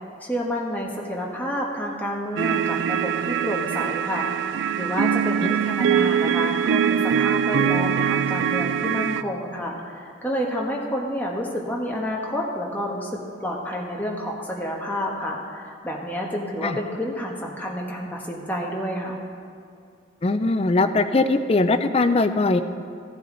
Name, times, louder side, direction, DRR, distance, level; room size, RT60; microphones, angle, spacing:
voice 1, 0.2-19.2, equal, 10° left, -2 dB, 1.2 m, -29 dB
sound 1, 2.4-9.2, right 8 dB, 80° right, 0.3 m, -23 dB
voice 2, 20.2-22.6, left 3 dB, 30° left, 9 dB, 0.4 m, -20 dB
14.5 x 9.6 x 3.9 m, 2.4 s
head